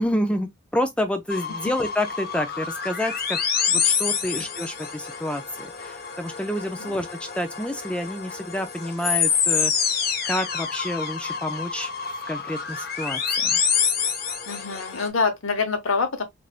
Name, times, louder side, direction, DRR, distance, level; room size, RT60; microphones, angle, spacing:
voice 1, 0.0-3.4 3.7-7.1 7.3-11.9 12.3-13.6, left 1 dB, 5° left, 0.4 m, -29 dB
sound 1, 1.3-15.1, left 6 dB, 45° left, 0.6 m, -27 dB
voice 2, 14.5-16.2, left 4 dB, 80° left, 0.9 m, -26 dB
3.4 x 2.5 x 2.4 m
head